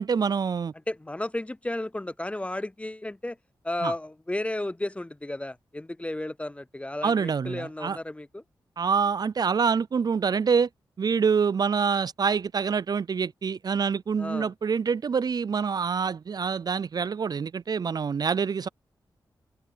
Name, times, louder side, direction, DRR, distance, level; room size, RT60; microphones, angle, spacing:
voice 1, 0.0-0.7 3.8-3.9 7.0-8.0 8.8-10.7 11.0-18.7, right 6 dB, 50° right, 0.4 m, -26 dB
voice 2, 0.9-3.4 3.6-8.4 14.2-14.5, left 1 dB, 15° left, 0.5 m, -33 dB
open air
cardioid pair, 50°, 8 cm